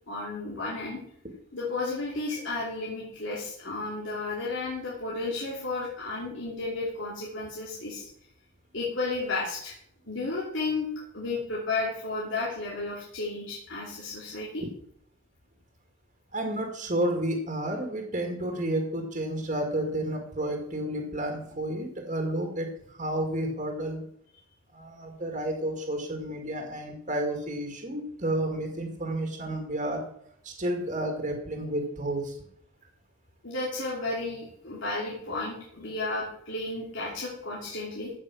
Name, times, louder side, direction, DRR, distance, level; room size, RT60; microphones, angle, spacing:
voice 1, 0.1-1.0 1.5-8.1 8.7-9.7 10.1-10.9 11.1-14.6 33.4-38.1, left 3 dB, 70° left, -5 dB, 2.9 m, -33 dB
voice 2, 16.3-24.0 24.7-30.1 30.4-32.4, right 1 dB, 35° right, 3 dB, 2.0 m, -31 dB
15.0 x 6.1 x 6.2 m, 0.67 s
head